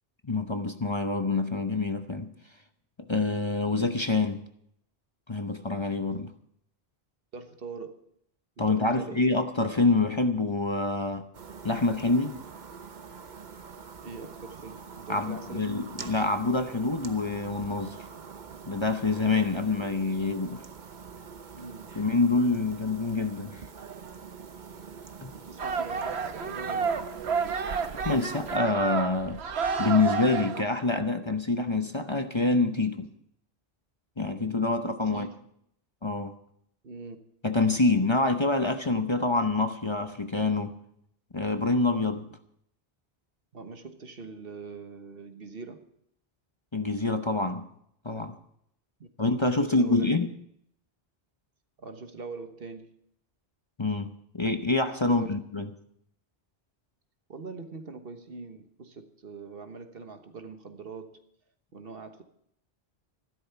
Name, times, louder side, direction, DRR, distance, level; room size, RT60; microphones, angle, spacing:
voice 1, 0.2-2.3 3.1-4.4 5.3-6.3 8.6-11.3 11.6-12.4 15.1-18.0 18.7-20.6 22.0-23.6 25.2-25.3 28.0-29.4 29.8-33.1 34.2-35.3 36.0-36.3 37.4-40.8 41.3-42.3 46.7-47.7 48.0-48.4 49.2-50.3 53.8-55.7, left 3 dB, 30° left, 7 dB, 0.8 m, -26 dB
voice 2, 7.3-8.0 8.6-9.3 14.0-15.8 21.5-22.0 25.3-27.0 35.1-35.4 36.8-37.2 43.5-45.9 49.0-49.1 49.5-50.2 51.8-52.9 55.0-55.3 57.3-61.2 61.7-62.2, right 4 dB, 65° right, 7 dB, 1.5 m, -42 dB
sound 1, 11.3-28.6, right 6 dB, 50° right, 1.0 m, -45 dB
sound 2, 25.6-30.6, right 5 dB, 85° right, 1.2 m, -30 dB
14.0 x 12.0 x 5.8 m, 0.71 s
omnidirectional pair, 1.1 m